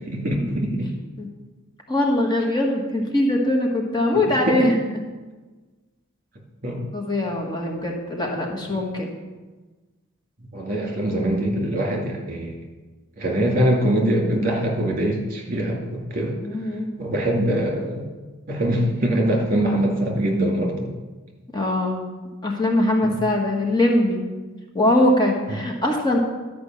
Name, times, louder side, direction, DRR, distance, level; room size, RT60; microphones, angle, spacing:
voice 1, 0.1-0.9 4.1-4.6 6.6-6.9 10.5-12.6 13.2-15.8 16.1-16.4 17.0-18.1 18.5-20.7 23.0-23.1, right 1 dB, 45° right, 0 dB, 2.2 m, -23 dB
voice 2, 1.9-4.8 6.9-9.1 16.4-16.9 21.5-22.1 22.4-24.2 24.7-26.2, left 1 dB, 20° left, 0 dB, 1.3 m, -22 dB
12.0 x 5.2 x 7.4 m, 1.3 s
head